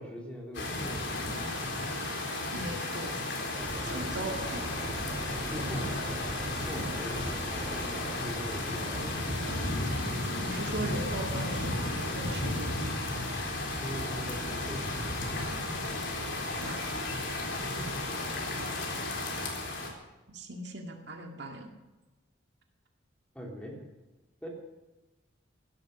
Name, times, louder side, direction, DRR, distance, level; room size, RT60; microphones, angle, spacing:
voice 1, 0.0-1.5 3.8-4.2 5.5-6.2 6.7-9.5 13.7-15.6 17.6-18.1 23.3-23.8 24.4-24.5, equal, 5° left, -1 dB, 3.5 m, -43 dB
sound 1, 0.5-19.9, left 2 dB, 70° left, 3.9 m, -33 dB
voice 2, 2.5-3.1 3.8-4.8 10.4-12.7 16.6-17.0 20.3-21.7, right 1 dB, 60° right, 3 dB, 2.1 m, -38 dB
sound 2, 3.5-18.0, right 1 dB, 25° right, 1.8 m, -47 dB
16.0 x 12.5 x 6.7 m, 1.1 s
head